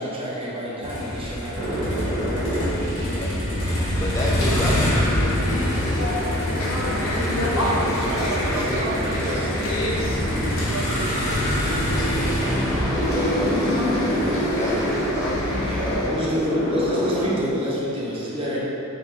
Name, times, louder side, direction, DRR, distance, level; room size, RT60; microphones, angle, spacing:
voice 1, 0.0-2.0 3.0-3.2 7.5-9.5 15.6-18.6, equal, 25° right, -6 dB, 0.6 m, -28 dB
Motor vehicle (road), 0.8-16.9, equal, 55° left, 1.0 m, -28 dB
sound 1, 1.5-17.2, equal, 60° right, 0.8 m, -27 dB
voice 2, 2.9-3.4 3.7-8.7 12.9-16.6, left 1 dB, 15° left, -5 dB, 0.3 m, -32 dB
sound 2, 5.5-16.1, left 1 dB, 85° left, 0.6 m, -29 dB
voice 3, 8.0-10.1 10.7-12.9 17.1-17.5, right 2 dB, 85° right, 0 dB, 0.4 m, -35 dB
3.4 x 2.4 x 3.5 m, 2.9 s
head